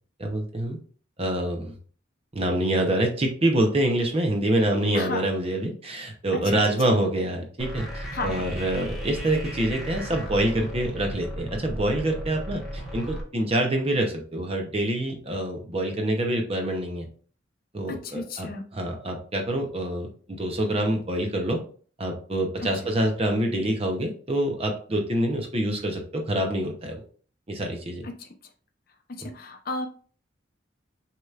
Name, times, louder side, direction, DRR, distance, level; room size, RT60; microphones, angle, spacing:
voice 1, 0.2-0.8 1.2-1.7 2.3-17.1 17.7-21.6 22.0-27.0 27.5-28.1 29.2-29.3, right 1 dB, 30° right, 2 dB, 0.8 m, -26 dB
sound 1, 7.6-13.2, equal, 5° right, 1.0 m, -35 dB
voice 2, 17.9-18.6 22.6-22.7 28.0-28.3 29.1-29.9, left 2 dB, 50° left, 5 dB, 0.6 m, -33 dB
6.3 x 3.0 x 2.4 m, 0.43 s
head